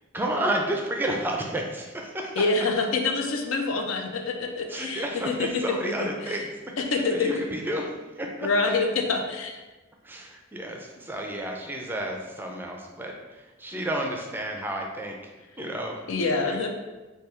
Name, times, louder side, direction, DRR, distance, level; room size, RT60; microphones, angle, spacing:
voice 1, 0.1-2.3 4.7-6.5 6.9-8.5 10.0-15.2 15.6-16.1 16.3-16.6, right 1 dB, 10° right, 1 dB, 0.4 m, -31 dB
voice 2, 2.4-6.1 6.8-7.3 8.4-9.6 16.1-16.7, left 3 dB, 80° left, 3 dB, 0.5 m, -26 dB
3.3 x 2.3 x 4.3 m, 1.2 s
head